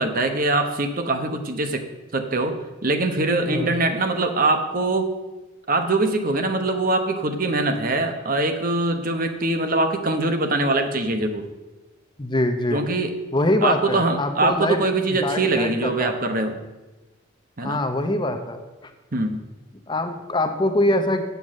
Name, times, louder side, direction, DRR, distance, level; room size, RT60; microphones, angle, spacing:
voice 1, 0.0-1.8 2.1-2.6 2.8-5.1 5.7-11.5 12.7-13.1 13.6-16.6 17.6-17.8 19.1-19.4, right 2 dB, 45° right, 7 dB, 0.9 m, -23 dB
voice 2, 12.2-12.8 13.3-14.8 15.1-16.2 17.6-18.9 19.9-21.2, left 1 dB, 20° left, 7 dB, 0.7 m, -24 dB
8.0 x 7.0 x 7.4 m, 1.1 s
head